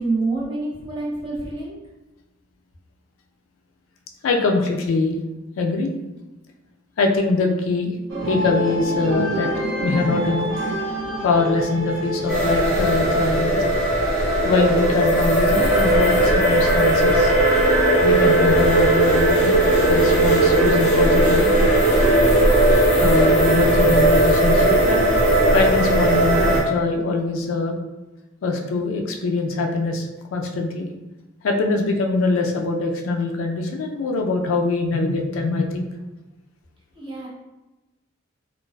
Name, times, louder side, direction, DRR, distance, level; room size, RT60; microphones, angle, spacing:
voice 1, 0.0-1.8 37.0-37.3, right 3 dB, 25° right, -5 dB, 0.6 m, -27 dB
voice 2, 4.2-5.2 5.6-5.9 7.0-7.9 8.3-9.5 9.8-10.5 11.2-13.6 14.4-17.3 18.0-19.6 19.9-21.5 23.0-25.1 25.5-27.8 28.4-30.9 31.4-35.8, left 3 dB, 85° left, 3 dB, 0.4 m, -23 dB
sound 1, 8.1-13.6, equal, 70° right, 0.4 m, -27 dB
sound 2, 12.3-26.6, right 1 dB, 5° left, 0.8 m, -17 dB
2.5 x 2.2 x 2.2 m, 1.1 s
head